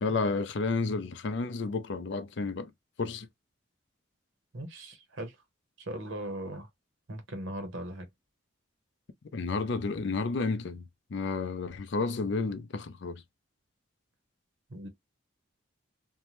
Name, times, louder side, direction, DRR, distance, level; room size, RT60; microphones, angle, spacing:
voice 1, 0.0-2.7 3.0-3.3 9.3-13.2, left 4 dB, 65° left, 0.4 m, -31 dB
voice 2, 4.5-5.4 5.8-6.7 7.1-8.1 14.7-14.9, right 1 dB, 70° right, 0.8 m, -39 dB
2.6 x 2.1 x 3.0 m
head